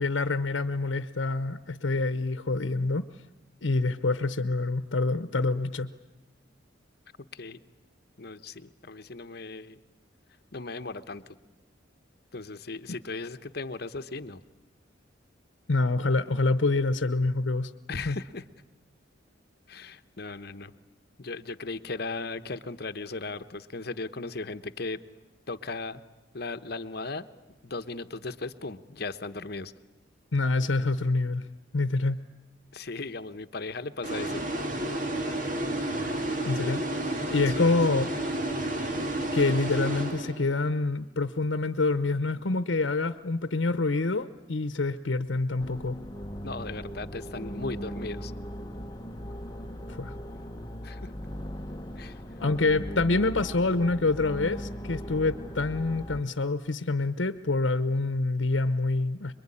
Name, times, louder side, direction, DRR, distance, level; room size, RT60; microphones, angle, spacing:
voice 1, 0.0-3.1 3.6-5.9 15.7-17.7 18.0-18.2 30.3-31.4 31.7-32.2 36.4-36.8 37.3-38.1 39.3-46.0 49.9-50.1 52.4-59.3, left 3 dB, 80° left, 11 dB, 0.9 m, -26 dB
voice 2, 8.2-9.8 10.5-11.2 12.3-14.4 17.9-18.4 19.7-20.7 21.2-25.0 25.5-26.0 26.3-27.3 27.6-29.7 32.7-34.4 37.5-37.8 46.4-48.3 50.8-51.1 52.0-52.2, left 3 dB, 55° left, 11 dB, 1.0 m, -37 dB
sound 1, 34.0-40.7, right 1 dB, 45° right, 2.2 m, -31 dB
sound 2, 45.6-56.2, equal, 20° left, 1.1 m, -38 dB
25.5 x 23.0 x 9.9 m, 1.0 s
head